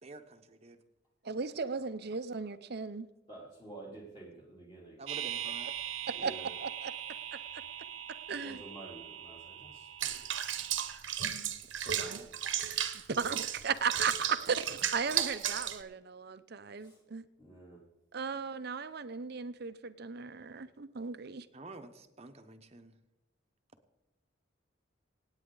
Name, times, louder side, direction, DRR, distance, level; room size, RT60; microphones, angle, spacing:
voice 1, 0.0-0.8 5.0-5.7 11.7-12.3 21.5-22.9, right 2 dB, 30° right, 7 dB, 1.0 m, -50 dB
voice 2, 1.2-3.1 6.1-6.3 6.6-6.9 8.3-8.6 12.0-12.2 12.7-17.2 18.1-21.5, right 5 dB, 55° right, 13 dB, 0.6 m, -36 dB
voice 3, 3.3-5.0 6.1-6.5 8.3-10.2 16.8-16.9 17.4-17.8, right 2 dB, 25° left, -4 dB, 3.1 m, -50 dB
sound 1, 5.1-11.0, right 10 dB, 85° right, 0.7 m, -42 dB
Water / Bathtub (filling or washing), 10.0-15.8, right 10 dB, 70° right, 1.0 m, -34 dB
25.5 x 9.1 x 3.9 m, 0.97 s
head